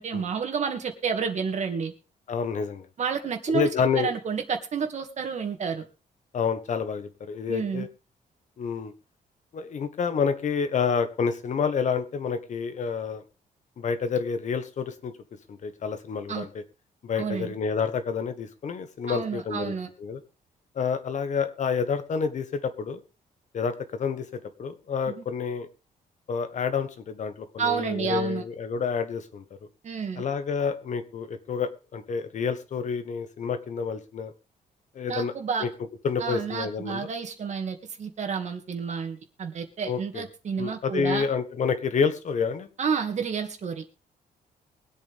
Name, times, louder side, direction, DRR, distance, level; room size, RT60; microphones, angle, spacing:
voice 1, 0.0-1.9 3.0-3.7 4.0-5.8 7.5-7.9 16.3-16.5 17.2-17.5 19.1-19.9 25.1-25.2 27.6-28.4 29.8-30.2 35.1-35.7 36.2-41.2 42.8-43.8, right 6 dB, 50° right, 6 dB, 2.3 m, -30 dB
voice 2, 2.3-2.8 3.5-4.1 6.3-7.9 8.6-8.9 9.5-13.2 13.8-15.1 15.5-16.5 17.0-19.7 20.0-20.2 20.7-23.0 23.5-25.7 26.3-29.4 30.2-34.3 34.9-35.3 35.6-35.7 36.0-37.0 39.8-40.2 40.6-42.7, left 6 dB, 50° left, 9 dB, 1.5 m, -28 dB
23.0 x 8.2 x 3.6 m, 0.32 s
cardioid pair, 130°, 15 cm